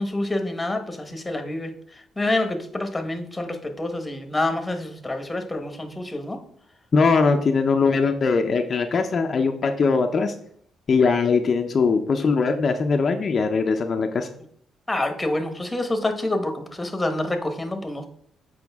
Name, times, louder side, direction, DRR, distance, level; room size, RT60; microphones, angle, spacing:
voice 1, 0.0-6.4 14.9-18.1, left 2 dB, 15° left, 6 dB, 1.2 m, -27 dB
voice 2, 6.9-10.3 10.9-14.3, left 4 dB, 45° left, 5 dB, 0.6 m, -21 dB
7.9 x 5.0 x 3.5 m, 0.64 s
cardioid pair, 90°, 0 cm